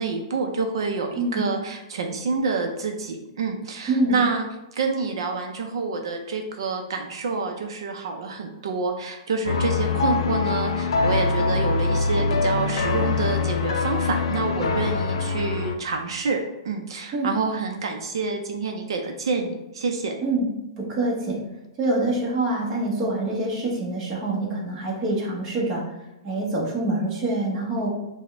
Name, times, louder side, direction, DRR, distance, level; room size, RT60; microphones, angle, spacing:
voice 1, 0.0-4.5 4.7-20.1, right 4 dB, 65° right, 4 dB, 0.5 m, -27 dB
voice 2, 1.1-1.4 3.9-4.2 17.1-17.3 20.2-20.4 20.8-21.4 21.8-25.8 26.2-28.0, right 2 dB, 15° right, -4 dB, 0.9 m, -25 dB
sound 1, 9.5-15.8, left 4 dB, 75° left, 0.4 m, -24 dB
6.0 x 2.1 x 3.3 m, 0.96 s
hypercardioid pair, 175°, 3 cm